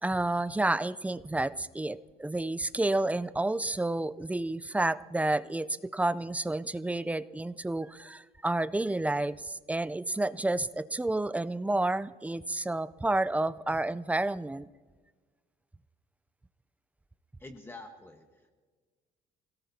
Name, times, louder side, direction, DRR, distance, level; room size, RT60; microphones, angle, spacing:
voice 1, 0.0-14.7, right 2 dB, 10° right, 14 dB, 0.4 m, -30 dB
voice 2, 17.4-18.5, left 2 dB, 15° left, 4 dB, 1.3 m, -47 dB
27.0 x 18.0 x 2.7 m, 1.4 s
cardioid pair, 110°, 17 cm